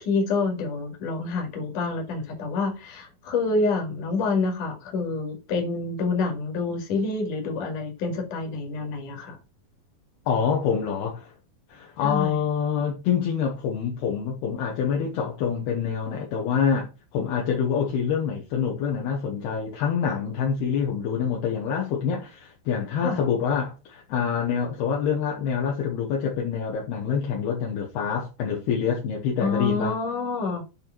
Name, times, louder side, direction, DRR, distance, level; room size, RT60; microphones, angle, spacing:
voice 1, 0.0-9.4 12.0-12.4 23.0-23.2 29.4-30.6, left 3 dB, 55° left, 3.0 m, -27 dB
voice 2, 10.3-11.3 11.7-30.0, left 7 dB, 70° left, 2.8 m, -26 dB
9.2 x 3.5 x 4.5 m
omnidirectional pair, 5.1 m